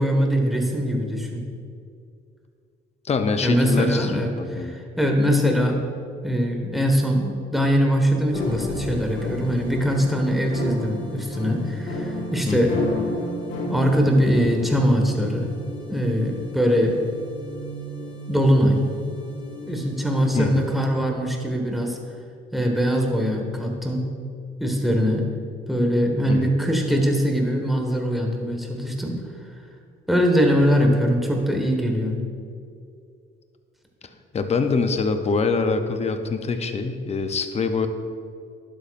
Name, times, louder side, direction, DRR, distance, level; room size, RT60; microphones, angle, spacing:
voice 1, 0.0-1.4 3.4-5.8 6.2-12.8 13.7-15.5 15.9-17.0 18.3-18.9 19.7-22.0 22.5-24.0 24.6-25.3 25.7-29.2 30.1-32.2, equal, ahead, 1 dB, 1.5 m, -22 dB
voice 2, 3.0-4.7 12.5-12.8 20.3-20.7 26.3-26.6 34.3-37.9, left 4 dB, 35° left, 7 dB, 0.7 m, -24 dB
sound 1, 8.3-20.9, left 1 dB, 90° left, 1.5 m, -32 dB
11.0 x 8.4 x 2.5 m, 2.4 s
cardioid pair, 90°, 20 cm